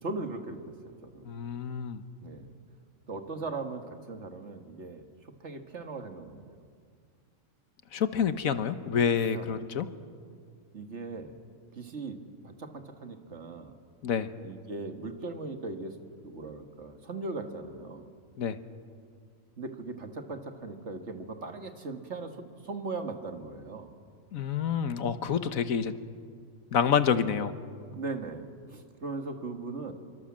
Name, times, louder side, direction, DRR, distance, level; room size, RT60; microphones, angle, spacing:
voice 1, 0.0-1.3 2.2-2.5 3.1-5.1 5.4-6.6 9.3-9.6 10.7-11.4 11.7-13.8 14.4-16.0 16.2-18.1 19.6-23.9 27.9-29.9, right 3 dB, 55° right, 6 dB, 2.0 m, -39 dB
voice 2, 1.2-2.0 7.9-9.9 14.0-14.3 18.4-18.6 24.3-26.0 26.7-27.5, left 7 dB, 90° left, 11 dB, 1.5 m, -28 dB
26.0 x 23.5 x 7.5 m, 2.1 s
omnidirectional pair, 1.4 m